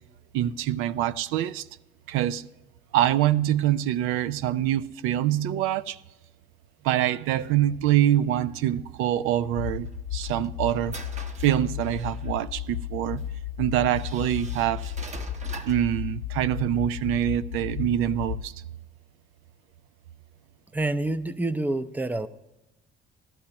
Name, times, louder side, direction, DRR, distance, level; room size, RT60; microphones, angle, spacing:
voice 1, 0.3-1.7 2.1-2.5 2.9-6.0 6.8-10.9 11.4-13.2 13.6-14.9 15.7-18.5, right 12 dB, 80° right, 0.4 m, -25 dB
sound 1, 9.6-18.4, left 10 dB, 80° left, 0.5 m, -34 dB
sound 2, 9.9-12.3 13.2-13.3 13.9-15.9, right 3 dB, 35° right, 1.0 m, -43 dB
voice 2, 20.7-22.3, right 2 dB, 10° right, 0.5 m, -27 dB
14.5 x 12.0 x 2.9 m
cardioid pair, 85°, 21 cm